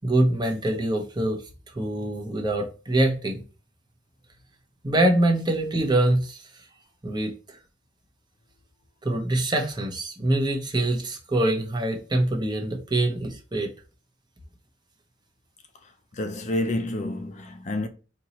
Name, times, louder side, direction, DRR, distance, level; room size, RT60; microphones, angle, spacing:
voice 1, 0.0-1.4 1.7-3.4 4.8-6.4 7.0-7.3 9.0-13.7, right 1 dB, 25° right, 0.8 m, -24 dB
voice 2, 16.1-17.9, left 1 dB, 40° left, 0.5 m, -29 dB
4.4 x 2.9 x 2.9 m
head